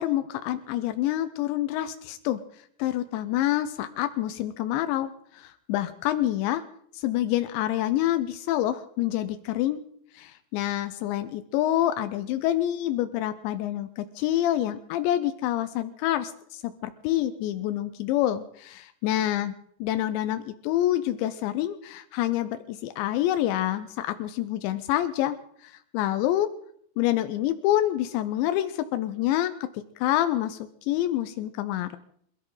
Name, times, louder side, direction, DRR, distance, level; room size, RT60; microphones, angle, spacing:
voice 1, 0.0-2.4 2.8-6.6 6.9-9.8 10.1-19.5 19.8-26.5 27.0-29.5 30.0-32.0, left 13 dB, 85° left, 10 dB, 3.0 m, -27 dB
27.0 x 13.5 x 3.8 m, 0.66 s
omnidirectional pair, 5.1 m